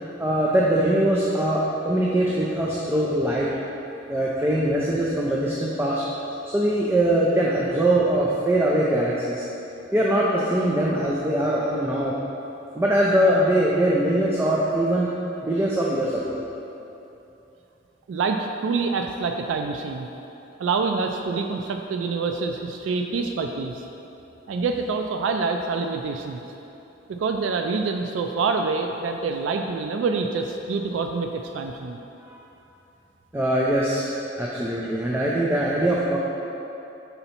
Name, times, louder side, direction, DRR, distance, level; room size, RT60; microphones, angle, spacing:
voice 1, 0.2-3.5 4.1-6.0 6.5-9.4 9.9-12.2 12.7-15.1 15.4-16.4 32.3-32.4 33.3-34.0 34.4-36.2, right 1 dB, 10° right, -5 dB, 0.4 m, -22 dB
voice 2, 18.1-20.1 20.6-23.8 24.5-26.4 27.1-32.0, right 4 dB, 80° right, 5 dB, 0.3 m, -26 dB
5.6 x 3.9 x 4.3 m, 3.0 s
head